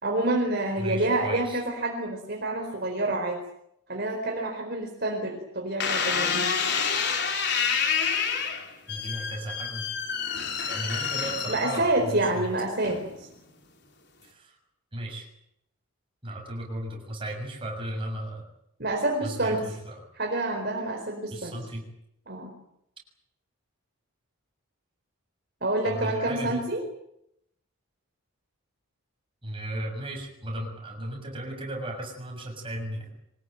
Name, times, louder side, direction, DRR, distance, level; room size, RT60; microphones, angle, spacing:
voice 1, 0.0-3.4 3.9-6.5 11.5-13.3 18.8-19.6 20.2-21.5 22.3-22.5 25.6-26.8, right 2 dB, 45° right, 2 dB, 4.4 m, -28 dB
voice 2, 0.8-1.6 8.9-9.9 10.2-10.4 10.6-12.4 14.2-14.6 14.9-15.3 16.2-18.5 19.2-20.0 21.3-21.8 25.8-26.6 29.4-33.1, right 1 dB, 25° right, 1 dB, 6.9 m, -35 dB
sound 1, 5.8-12.2 12.8-13.3, left 6 dB, 50° left, 3.9 m, -28 dB
25.0 x 20.0 x 9.2 m, 0.77 s
head